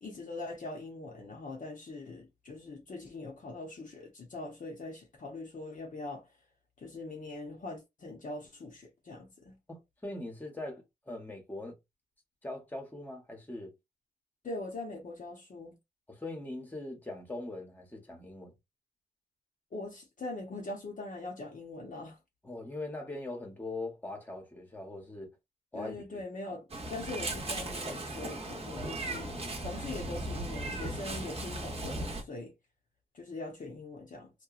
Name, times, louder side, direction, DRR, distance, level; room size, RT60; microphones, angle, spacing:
voice 1, 0.0-6.3 6.8-9.6 14.4-15.7 19.7-22.2 25.7-32.5 33.1-34.3, left 2 dB, 50° left, 0.7 m, -42 dB
voice 2, 9.7-11.8 12.4-13.7 16.1-18.5 22.4-25.3 25.7-26.5 28.8-29.2, left 2 dB, 10° left, 0.9 m, -41 dB
Meow, 26.7-32.2, right 2 dB, 35° right, 0.8 m, -37 dB
2.8 x 2.2 x 2.4 m
wide cardioid pair, 110°, 17 cm